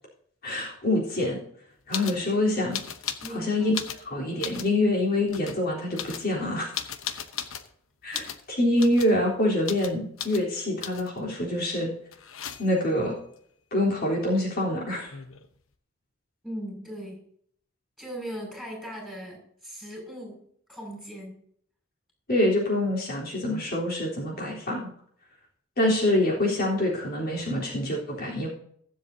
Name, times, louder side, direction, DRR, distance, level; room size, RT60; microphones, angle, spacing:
voice 1, 0.4-1.4 1.9-2.8 3.3-3.7 4.1-6.7 8.0-8.2 8.6-11.9 12.6-13.1 13.7-15.2 22.3-24.9 25.8-28.5, left 1 dB, 50° left, -3 dB, 3.7 m, -25 dB
sound 1, 1.9-2.2 2.7-3.4 3.7-4.7 5.3-5.6 5.9-7.7 8.1-8.4 8.8-9.2 9.6-9.9 10.2-10.4 10.8-11.2 12.1-12.9 14.7-14.8 14.9-15.5, left 9 dB, 80° left, 1.0 m, -36 dB
voice 2, 2.0-2.5 3.2-3.7 7.1-7.3 8.1-8.3 16.4-17.2 18.0-21.4, equal, ahead, -1 dB, 5.9 m, -39 dB
21.5 x 7.8 x 2.8 m, 0.64 s
head